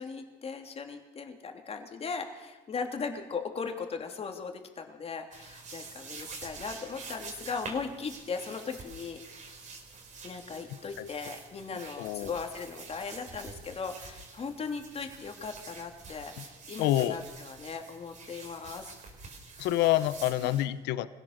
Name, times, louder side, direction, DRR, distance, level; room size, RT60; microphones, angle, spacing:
voice 1, 0.0-9.2 10.2-18.9 20.4-20.6, left 5 dB, 35° left, 5 dB, 3.1 m, -38 dB
sound 1, 5.3-20.6, right 4 dB, 45° right, 4.8 m, -47 dB
voice 2, 12.0-12.3 16.8-17.2 19.6-21.1, left 14 dB, 90° left, 14 dB, 1.0 m, -27 dB
25.0 x 16.5 x 6.7 m, 1.1 s
cardioid pair, 110°, 17 cm